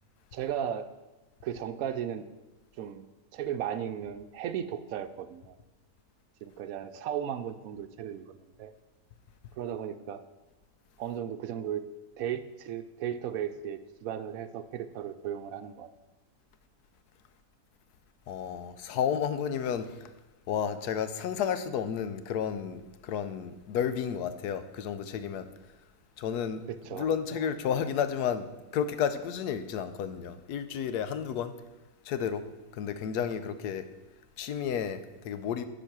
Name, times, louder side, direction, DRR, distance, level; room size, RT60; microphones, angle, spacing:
voice 1, 0.3-0.9 1.4-2.2 2.8-3.0 3.3-5.6 6.4-8.7 9.6-10.2 11.0-11.8 12.2-15.9 26.7-27.1, right 9 dB, 70° right, 10 dB, 1.0 m, -35 dB
voice 2, 18.3-20.1 20.5-25.5 26.2-26.6 26.9-31.5 32.0-32.4 32.7-33.8 34.4-35.7, left 8 dB, 90° left, 12 dB, 1.2 m, -32 dB
9.9 x 4.8 x 6.0 m, 1.1 s
omnidirectional pair, 1.6 m